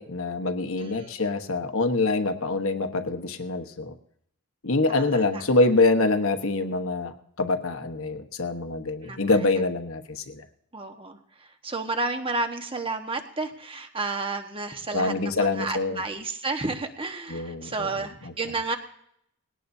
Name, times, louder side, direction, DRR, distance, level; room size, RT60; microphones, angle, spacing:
voice 1, 0.0-4.0 4.6-10.5 14.9-16.0 17.3-18.3, left 3 dB, 60° left, 7 dB, 1.2 m, -25 dB
voice 2, 0.8-1.1 4.9-5.2 9.0-9.3 10.7-11.2 11.6-18.8, right 3 dB, 25° right, 5 dB, 1.3 m, -31 dB
20.0 x 17.5 x 2.7 m, 0.71 s
head